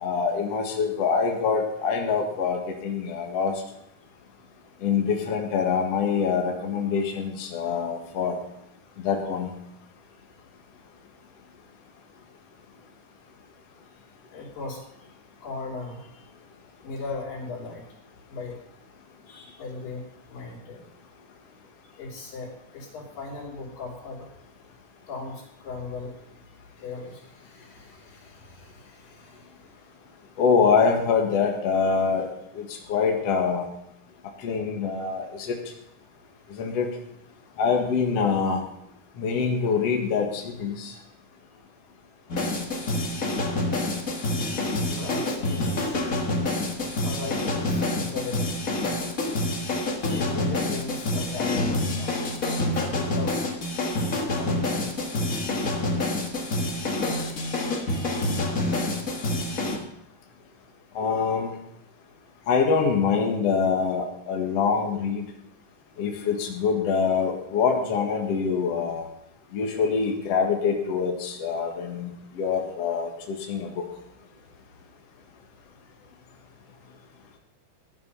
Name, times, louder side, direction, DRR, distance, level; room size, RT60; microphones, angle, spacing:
voice 1, 0.0-3.5 4.8-8.3 9.0-9.5 30.4-32.3 32.5-33.7 34.4-35.6 36.6-36.9 37.6-38.6 39.2-40.9 61.0-61.6 62.5-65.3 66.0-69.1 69.5-73.8, left 5 dB, 55° left, 1 dB, 2.6 m, -25 dB
voice 2, 14.3-14.8 15.4-16.1 16.8-17.8 18.3-18.6 19.3-20.8 22.0-24.3 25.1-26.1 26.7-29.6 32.8-32.9 44.8-46.1 46.4-49.1 50.0-52.1 52.6-53.4 54.4-55.2, left 3 dB, 90° left, -2 dB, 5.1 m, -38 dB
sound 1, 42.3-59.8, left 2 dB, 35° left, 1.7 m, -27 dB
15.5 x 10.5 x 5.5 m, 0.77 s
omnidirectional pair, 3.8 m